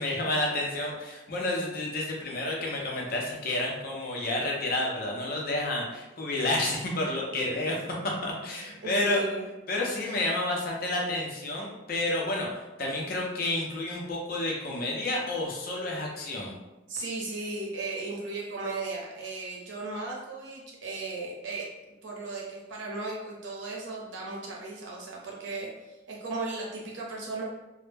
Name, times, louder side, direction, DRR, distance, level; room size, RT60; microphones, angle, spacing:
voice 1, 0.0-9.2 9.7-16.5, left 1 dB, 55° left, -2 dB, 0.6 m, -30 dB
voice 2, 8.6-9.5 16.9-21.7 22.0-27.4, right 3 dB, 90° right, -3 dB, 0.7 m, -36 dB
2.1 x 2.1 x 3.2 m, 1.0 s
head